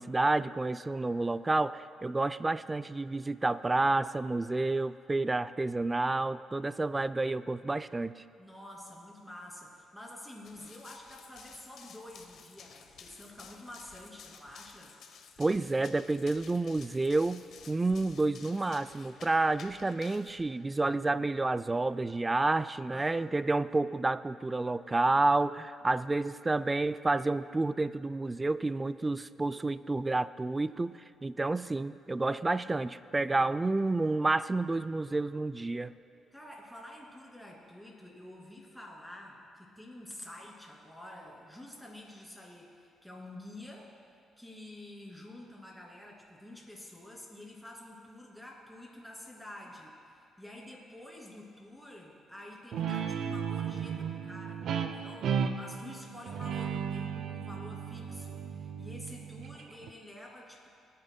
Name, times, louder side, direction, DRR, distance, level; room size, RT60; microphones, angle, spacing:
voice 1, 0.0-8.2 15.4-35.9, right 2 dB, 20° right, 14 dB, 0.3 m, -30 dB
voice 2, 8.4-14.9 22.9-23.5 25.9-26.2 33.1-33.6 36.3-43.9 44.4-60.7, left 1 dB, ahead, -3 dB, 2.6 m, -49 dB
Run, 10.4-20.4, left 6 dB, 70° left, 0.9 m, -53 dB
Guitar, 52.7-59.9, right 7 dB, 70° right, 0.6 m, -35 dB
21.0 x 9.4 x 2.3 m, 2.3 s
cardioid pair, 90°, 0 cm